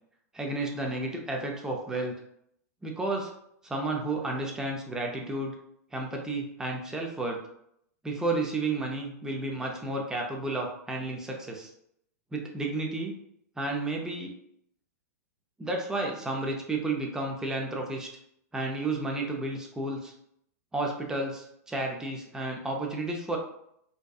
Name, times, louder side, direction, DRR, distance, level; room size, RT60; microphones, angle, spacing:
voice 1, 0.3-2.2 2.8-3.3 3.6-5.5 5.9-7.4 8.0-11.7 12.3-13.1 13.6-14.3 15.6-18.1 18.5-20.1 20.7-23.4, right 2 dB, 5° right, 0 dB, 0.4 m, -32 dB
2.6 x 2.1 x 2.3 m, 0.74 s
hypercardioid pair, 130°, 9 cm